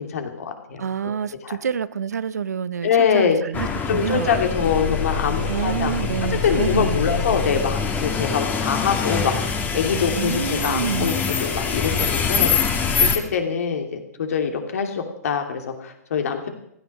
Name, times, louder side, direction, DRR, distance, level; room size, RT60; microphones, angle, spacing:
voice 1, 0.0-0.8 1.4-1.5 2.8-3.4 3.9-5.9 6.3-11.1 11.4-16.5, left 6 dB, 65° left, 5 dB, 3.0 m, -24 dB
voice 2, 0.8-4.4 5.5-7.4 10.2-11.2, right 7 dB, 75° right, 18 dB, 0.7 m, -28 dB
sound 1, 3.5-13.2, left 5 dB, 20° left, 2.0 m, -24 dB
16.0 x 13.0 x 6.4 m, 0.74 s
hypercardioid pair, 120°, 9 cm